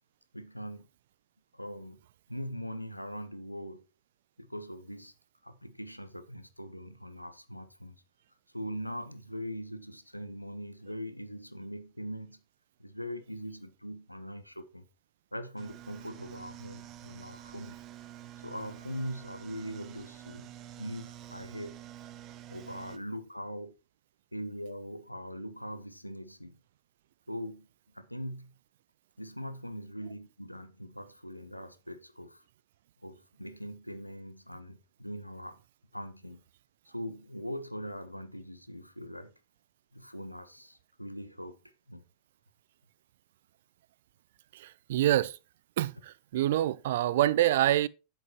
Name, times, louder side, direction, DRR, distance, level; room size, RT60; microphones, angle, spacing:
voice 1, 0.3-0.9 1.5-2.0 2.3-3.8 4.4-5.1 5.4-7.9 8.5-12.4 12.8-14.9 15.3-17.8 18.4-20.5 20.8-21.8 22.5-23.7 24.3-26.6 27.3-27.7 27.9-28.5 29.2-32.4 33.0-35.6 35.9-36.4 36.8-39.3 39.9-41.6 41.9-42.0, equal, 90° left, 0.9 m, -41 dB
sound 1, 15.6-23.0, right 12 dB, 35° right, 0.8 m, -48 dB
voice 2, 44.5-45.4 45.8-47.9, right 13 dB, 55° right, 0.4 m, -26 dB
10.5 x 7.7 x 3.0 m
figure-of-eight pair, 90°, 0 cm